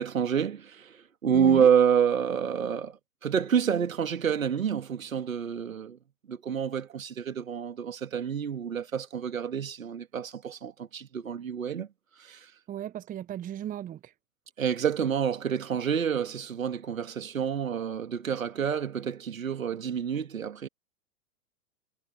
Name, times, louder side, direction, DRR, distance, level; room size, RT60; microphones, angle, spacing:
voice 1, 0.0-6.0 6.3-11.9 12.2-12.5 14.6-20.7, right 7 dB, 70° right, 2.7 m, -28 dB
voice 2, 1.3-1.7 12.7-14.1, right 11 dB, 20° right, 1.5 m, -36 dB
figure-of-eight pair, 105°, 42 cm